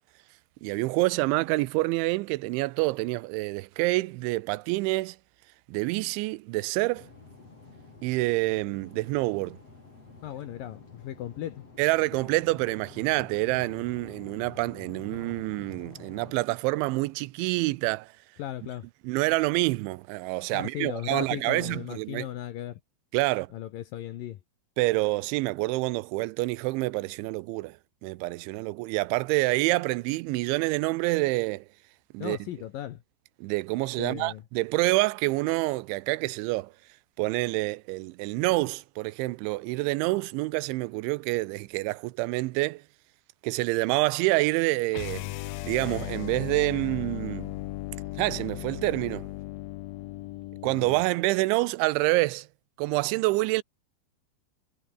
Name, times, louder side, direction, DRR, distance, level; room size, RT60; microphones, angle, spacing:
voice 1, 0.6-5.2 5.7-7.1 8.0-9.6 11.8-18.1 19.0-22.3 23.1-23.5 24.8-27.8 28.0-31.6 32.1-32.4 33.4-36.7 37.2-42.8 43.4-45.3 45.6-47.5 48.2-49.3 50.6-52.5 52.8-53.6, right 21 dB, 90° right, 3.1 m, -27 dB
sound 1, 6.9-16.3, left 3 dB, 35° left, 7.0 m, -48 dB
voice 2, 10.2-11.6 18.4-18.9 20.5-22.8 23.5-24.4 32.2-33.0 34.0-34.4, left 12 dB, 70° left, 2.3 m, -36 dB
sound 2, 44.9-51.1, left 18 dB, 85° left, 2.0 m, -37 dB
omnidirectional pair, 5.2 m